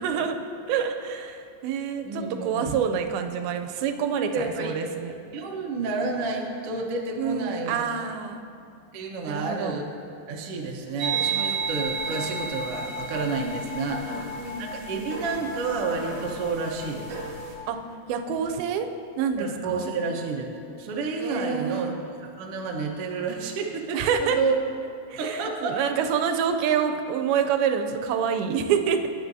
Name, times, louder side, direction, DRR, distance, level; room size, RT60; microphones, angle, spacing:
voice 1, 0.0-0.4 0.7-5.1 7.2-8.4 9.3-9.8 13.9-15.1 17.7-17.8 18.1-18.9 19.2-19.9 21.2-22.0 23.9-24.4 25.1-29.1, right 7 dB, 90° right, 6 dB, 2.5 m, -27 dB
voice 2, 2.0-2.7 4.2-4.8 5.3-7.8 8.9-9.8 10.3-14.3 14.6-17.2 19.4-20.5 20.8-24.6 25.2-25.8, right 4 dB, 75° right, 0 dB, 1.3 m, -30 dB
sound 1, 11.0-17.5, right 3 dB, 50° right, 2.5 m, -32 dB
17.5 x 9.6 x 2.7 m, 2.5 s
omnidirectional pair, 4.2 m